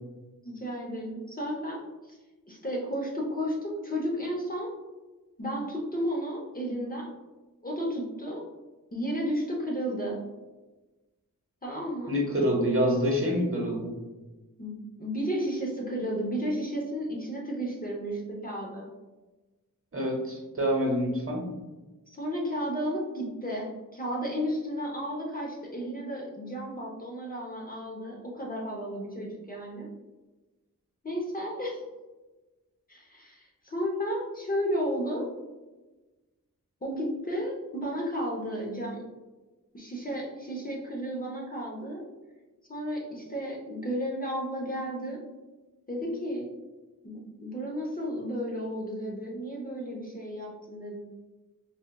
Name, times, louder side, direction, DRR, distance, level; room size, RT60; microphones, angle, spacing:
voice 1, 0.4-2.2 2.5-4.7 5.4-7.1 7.6-8.5 8.9-10.2 11.6-12.1 14.6-18.9 22.1-29.9 31.0-31.8 32.9-35.3 36.8-39.0 39.7-42.0 42.7-45.2 45.9-46.5 47.0-51.0, equal, 25° left, -3 dB, 0.7 m, -33 dB
voice 2, 12.1-13.9 19.9-21.4, equal, 40° right, -2 dB, 0.9 m, -26 dB
4.3 x 2.3 x 2.2 m, 1.2 s
wide cardioid pair, 70°, 35 cm